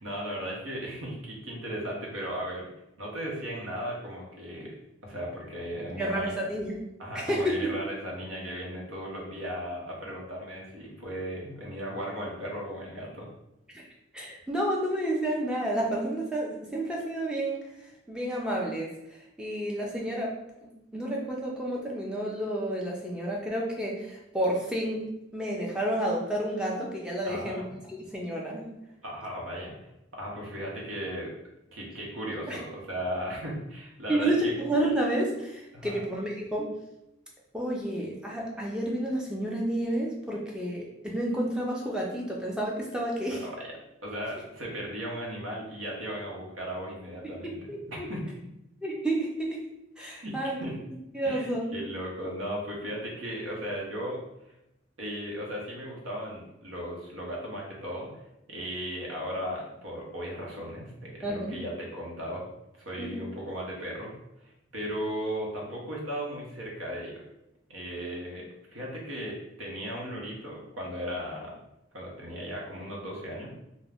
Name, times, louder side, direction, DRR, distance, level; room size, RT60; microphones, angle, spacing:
voice 1, 0.0-2.7 3.0-4.7 5.0-6.5 7.0-13.3 27.2-27.7 29.0-29.7 30.1-31.3 31.7-34.5 35.7-36.0 43.3-43.7 44.0-47.6 47.9-48.4 50.1-50.3 50.6-50.7 51.2-54.2 55.0-58.1 58.5-62.5 62.7-64.1 64.4-67.2 67.7-71.6 71.9-73.6, equal, 85° right, -2 dB, 0.8 m, -36 dB
voice 2, 6.0-6.8 7.1-7.7 13.7-13.8 14.1-17.6 18.1-18.9 19.4-20.4 20.6-25.1 25.3-28.7 32.5-32.6 34.1-36.7 37.5-43.4 47.2-48.1 48.8-49.6 50.0-50.6 51.1-51.7 61.2-61.6 63.0-63.3, right 1 dB, 5° right, -3 dB, 0.4 m, -30 dB
2.4 x 2.1 x 3.3 m, 0.87 s
head